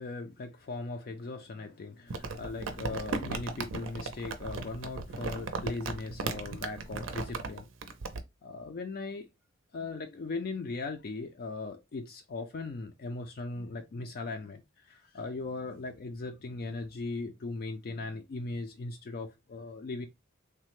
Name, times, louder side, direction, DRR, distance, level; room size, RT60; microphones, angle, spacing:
voice 1, 0.0-7.7 8.4-9.3 9.7-20.1, left 3 dB, 45° left, 0.3 m, -38 dB
Crumpling crinkling, 2.1-8.2, right 3 dB, 70° right, 0.5 m, -36 dB
3.2 x 2.1 x 2.9 m
head